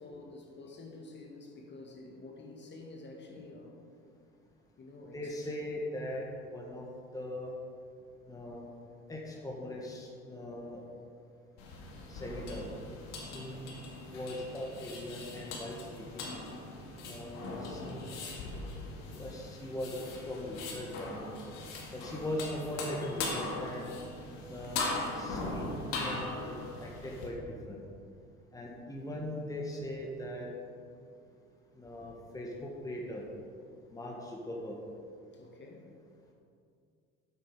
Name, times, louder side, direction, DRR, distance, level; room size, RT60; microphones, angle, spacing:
voice 1, 0.0-3.8 4.8-5.6 13.2-13.5 35.3-35.9, left 2 dB, 40° left, 1 dB, 1.8 m, -49 dB
voice 2, 5.1-6.9 7.1-7.5 8.3-8.7 9.1-10.8 12.1-12.6 13.2-13.7 14.1-16.4 17.0-18.1 19.1-21.3 21.9-23.9 24.5-25.7 26.0-26.5 26.8-27.4 27.7-27.8 28.5-30.5 31.8-33.2 33.9-34.8, left 1 dB, 10° left, -2 dB, 1.6 m, -40 dB
sound 1, 11.6-27.3, left 3 dB, 70° left, 2.0 m, -40 dB
9.1 x 7.9 x 4.8 m, 2.4 s
hypercardioid pair, 80°, 29 cm